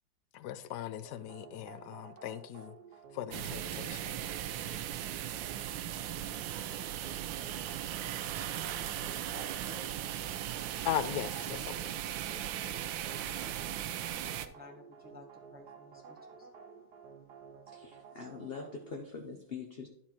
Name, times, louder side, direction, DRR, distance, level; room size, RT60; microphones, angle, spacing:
voice 1, 0.3-2.7 3.1-4.2 10.8-11.9, left 12 dB, 70° left, 1.0 m, -38 dB
sound 1, 1.0-19.0, right 5 dB, 65° right, 1.4 m, -53 dB
sound 2, 3.3-14.5, right 11 dB, 80° right, 1.3 m, -38 dB
voice 2, 8.0-10.8 13.4-17.5, equal, 5° right, 0.9 m, -55 dB
voice 3, 17.7-19.9, left 5 dB, 50° left, 0.7 m, -43 dB
12.0 x 4.3 x 4.3 m
omnidirectional pair, 2.1 m